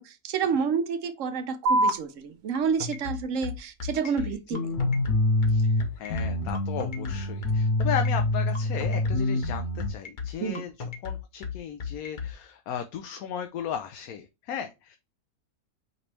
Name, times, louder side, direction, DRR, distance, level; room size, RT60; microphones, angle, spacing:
voice 1, 0.0-4.7 10.4-10.6, right 6 dB, 65° right, 0.9 m, -29 dB
sound 1, 1.7-8.6, right 2 dB, 85° right, 1.2 m, -34 dB
sound 2, 2.5-12.3, left 6 dB, 40° left, 0.8 m, -35 dB
voice 2, 4.0-4.4 5.5-10.7 11.0-15.0, left 8 dB, 70° left, 1.0 m, -36 dB
sound 3, 4.5-5.8 6.1-9.9, left 2 dB, 90° left, 1.7 m, -26 dB
5.0 x 3.1 x 3.2 m
omnidirectional pair, 1.6 m